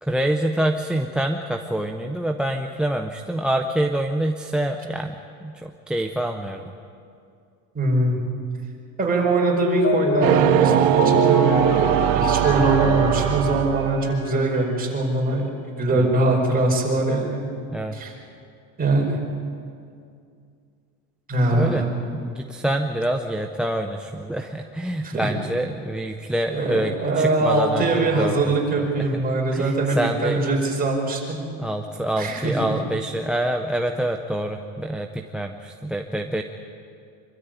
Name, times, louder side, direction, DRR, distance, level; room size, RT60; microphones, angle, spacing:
voice 1, 0.0-6.6 16.0-16.1 17.7-18.0 21.5-21.8 22.2-28.9 29.5-30.4 31.6-36.4, right 1 dB, ahead, 6 dB, 0.5 m, -26 dB
voice 2, 7.7-8.2 9.0-15.5 15.8-17.4 17.9-18.1 18.8-19.2 21.3-21.8 25.0-25.3 26.5-31.4 32.2-32.7, right 2 dB, 20° right, -1 dB, 4.9 m, -22 dB
Mallet percussion, 9.3-14.3, equal, 40° left, 3.7 m, -25 dB
sound 1, 10.2-14.3, right 17 dB, 60° right, 0.7 m, -21 dB
25.5 x 13.5 x 9.0 m, 2.4 s
supercardioid pair, 135°, 46 cm